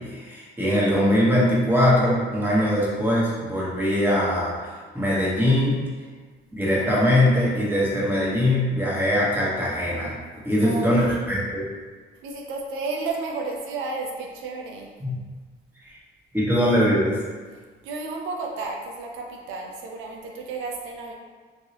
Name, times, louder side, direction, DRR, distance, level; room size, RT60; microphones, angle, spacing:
voice 1, 0.0-5.8 6.5-10.2 10.4-11.6 15.0-15.2 15.8-16.0 16.3-17.2, left 1 dB, 10° right, -7 dB, 1.1 m, -22 dB
voice 2, 12.2-14.9 17.5-21.1, right 3 dB, 90° right, 0 dB, 0.5 m, -32 dB
3.1 x 2.7 x 2.9 m, 1.4 s
cardioid pair, 90°, 20 cm